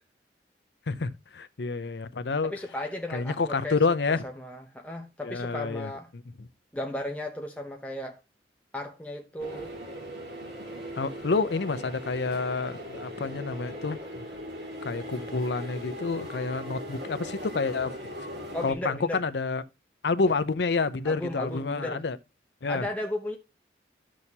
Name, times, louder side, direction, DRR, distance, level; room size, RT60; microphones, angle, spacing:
voice 1, 0.9-2.5 3.1-4.3 5.2-5.9 11.0-14.2 14.8-17.9 18.6-19.6 20.0-22.2 22.6-22.9, left 4 dB, 70° left, 0.6 m, -28 dB
voice 2, 2.4-3.8 4.2-6.1 6.7-8.2 8.7-9.7 18.5-19.2 20.2-20.4 21.1-22.0 22.7-23.4, left 1 dB, 10° left, 0.7 m, -35 dB
sound 1, 9.4-18.7, equal, 75° right, 3.5 m, -39 dB
12.0 x 6.3 x 2.8 m
head